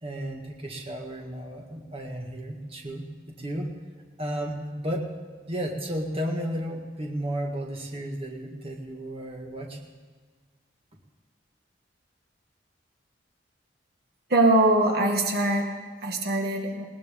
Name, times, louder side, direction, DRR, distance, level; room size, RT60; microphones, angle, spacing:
voice 1, 0.0-3.7 4.2-5.1 5.5-9.8, right 1 dB, 30° right, 0 dB, 1.8 m, -33 dB
voice 2, 14.3-16.8, right 1 dB, 55° right, 2 dB, 1.8 m, -23 dB
20.0 x 19.0 x 3.7 m, 1.5 s
head